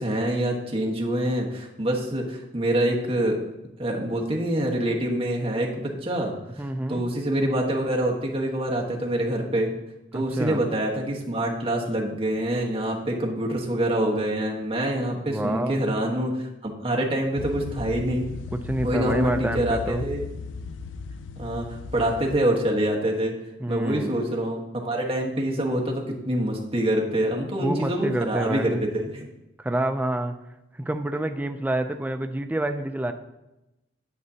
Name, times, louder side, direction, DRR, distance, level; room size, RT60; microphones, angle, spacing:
voice 1, 0.0-3.4 3.8-6.3 6.9-9.7 10.1-16.4 16.6-18.2 18.8-20.2 21.4-23.3 23.7-29.3, right 1 dB, 30° right, -1 dB, 1.3 m, -26 dB
voice 2, 6.6-7.0 10.1-10.6 15.2-15.8 18.5-20.1 23.6-24.2 27.6-28.8 29.6-30.3 30.8-33.1, right 1 dB, 10° right, 6 dB, 0.4 m, -28 dB
sound 1, 17.4-22.4, left 4 dB, 75° left, 0.4 m, -36 dB
9.4 x 7.8 x 2.8 m, 0.94 s
head